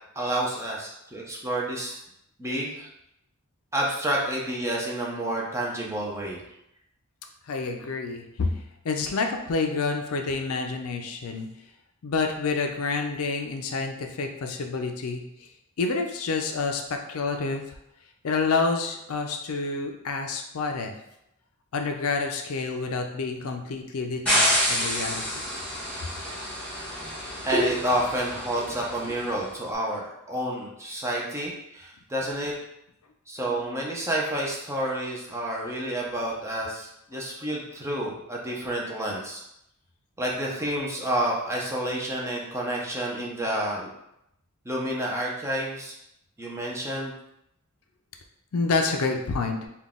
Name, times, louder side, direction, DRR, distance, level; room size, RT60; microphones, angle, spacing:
voice 1, 0.2-2.0 2.4-2.9 3.7-6.4 27.4-32.5 33.3-39.4 40.2-43.9 44.6-46.0 46.4-47.1, right 1 dB, 10° right, -3 dB, 0.6 m, -29 dB
voice 2, 7.4-11.5 12.0-15.5 15.8-17.8 18.2-20.9 21.7-25.4 48.5-49.7, left 4 dB, 70° left, 4 dB, 0.4 m, -28 dB
sound 1, 24.3-29.4, equal, 5° left, 1.2 m, -28 dB
3.8 x 2.3 x 3.5 m, 0.80 s
head